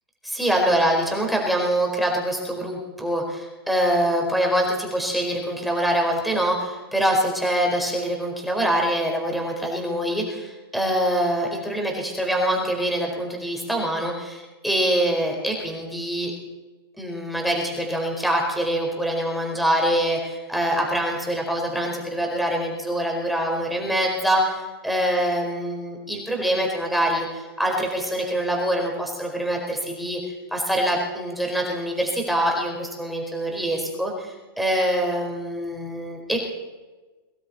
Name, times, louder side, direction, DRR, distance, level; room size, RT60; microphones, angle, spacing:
voice 1, 0.2-16.3 17.0-36.4, right 1 dB, ahead, -1 dB, 4.6 m, -24 dB
23.0 x 12.5 x 4.4 m, 1.2 s
hypercardioid pair, 135°, 13 cm